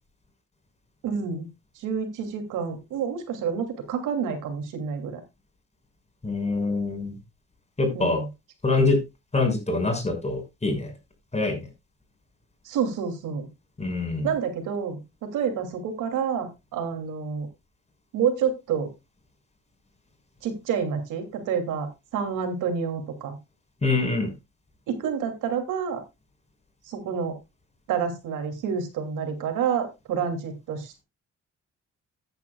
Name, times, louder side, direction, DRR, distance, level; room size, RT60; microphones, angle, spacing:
voice 1, 1.0-1.5 1.8-5.2 7.9-8.3 12.6-13.5 14.2-17.5 18.1-18.9 20.4-23.4 24.9-26.0 26.9-27.3 27.9-31.0, right 7 dB, 90° right, 6 dB, 2.9 m, -28 dB
voice 2, 6.2-7.2 7.8-8.2 8.6-9.0 9.3-10.9 11.3-11.7 13.8-14.3 23.8-24.3, left 3 dB, 20° left, 4 dB, 6.0 m, -24 dB
14.5 x 9.8 x 2.4 m, 0.24 s
cardioid pair, 90°, 30 cm